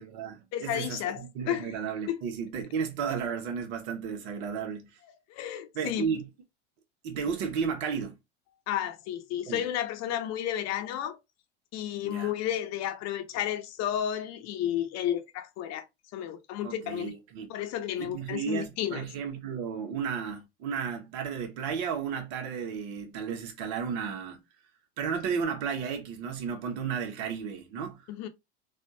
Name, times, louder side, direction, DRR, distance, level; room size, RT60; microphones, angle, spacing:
voice 1, 0.0-4.9 5.7-6.2 7.0-8.1 9.5-9.6 12.0-12.3 16.6-17.5 18.0-24.4 25.0-28.0, right 6 dB, 65° right, 1.1 m, -33 dB
voice 2, 0.5-1.7 2.1-2.2 5.3-6.1 8.7-11.2 11.7-15.9 16.1-17.1 17.5-19.1 28.1-28.3, left 11 dB, 50° left, 0.7 m, -32 dB
3.4 x 2.4 x 2.7 m
hypercardioid pair, 90°, 33 cm